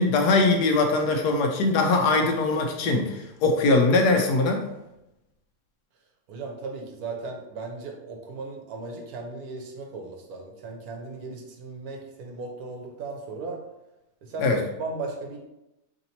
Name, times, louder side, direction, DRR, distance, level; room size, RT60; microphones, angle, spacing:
voice 1, 0.0-4.6 14.4-14.6, left 3 dB, 80° left, 4 dB, 1.2 m, -21 dB
voice 2, 6.3-13.6 14.2-15.4, right 3 dB, 70° right, 1 dB, 1.2 m, -36 dB
3.3 x 2.8 x 4.0 m, 0.92 s
omnidirectional pair, 1.7 m